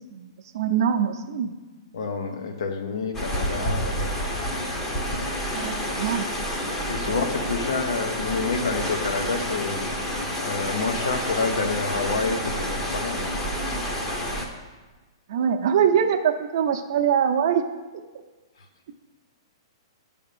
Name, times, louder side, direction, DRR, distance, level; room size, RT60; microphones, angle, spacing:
voice 1, 0.1-1.5 5.5-6.3 7.1-7.2 15.3-17.6, right 8 dB, 50° right, 6 dB, 0.6 m, -23 dB
voice 2, 1.9-4.4 6.9-9.9 10.4-13.5, left 4 dB, 70° left, 5 dB, 1.1 m, -28 dB
sound 1, 3.1-14.5, equal, 15° left, 0.8 m, -29 dB
9.2 x 3.5 x 6.8 m, 1.2 s
hypercardioid pair, 165°, 3 cm